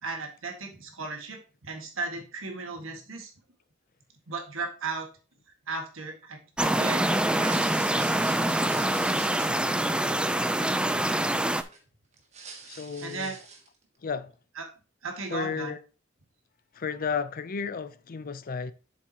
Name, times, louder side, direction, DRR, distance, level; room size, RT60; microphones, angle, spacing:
voice 1, 0.0-3.3 4.3-5.1 5.7-7.6 13.0-13.4 14.6-14.7 15.0-15.7, right 3 dB, 75° right, 1.8 m, -36 dB
sound 1, 6.6-11.6, right 1 dB, 5° right, 0.4 m, -25 dB
sound 2, 7.5-11.8 12.1-13.8, right 4 dB, 35° right, 1.6 m, -45 dB
voice 2, 12.6-13.3 14.0-14.3 15.3-15.8 16.7-18.7, left 5 dB, 45° left, 0.5 m, -33 dB
7.6 x 7.1 x 2.9 m
head